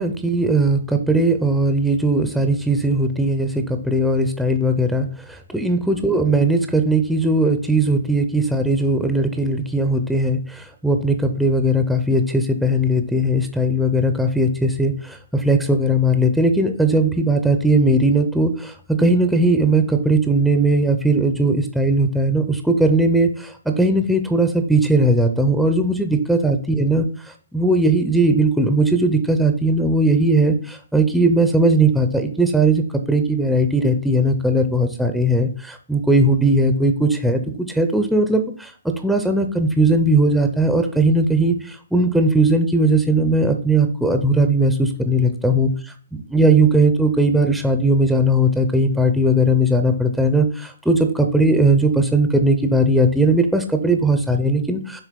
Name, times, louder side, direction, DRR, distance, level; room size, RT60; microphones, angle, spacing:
voice 1, 0.0-27.1 27.5-38.7 39.0-45.7 46.3-55.0, right 1 dB, ahead, 5 dB, 0.5 m, -18 dB
6.6 x 3.0 x 5.1 m, 0.43 s
hypercardioid pair, 150°, 0 cm